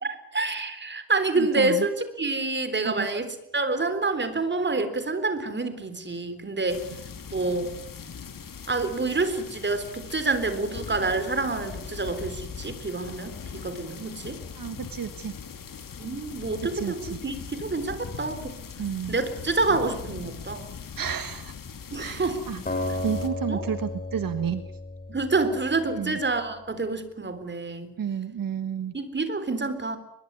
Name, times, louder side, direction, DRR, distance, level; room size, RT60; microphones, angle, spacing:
voice 1, 0.0-1.9 2.2-6.9 7.3-7.7 8.7-14.4 16.0-17.0 17.2-18.6 19.1-20.7 21.9-22.4 23.5-23.6 25.1-28.0 28.9-30.0, right 3 dB, 30° right, 10 dB, 3.9 m, -27 dB
voice 2, 1.3-1.9 2.8-3.1 14.5-15.3 16.7-17.2 18.8-19.2 21.0-21.5 22.0-24.6 25.9-26.2 28.0-29.0, right 8 dB, 70° right, 10 dB, 1.5 m, -31 dB
sound 1, 6.7-23.3, left 6 dB, 65° left, 2.9 m, -40 dB
Acoustic guitar, 22.7-25.8, left 2 dB, 25° left, 5.3 m, -33 dB
23.0 x 22.0 x 9.7 m, 0.82 s
wide cardioid pair, 135°, 35 cm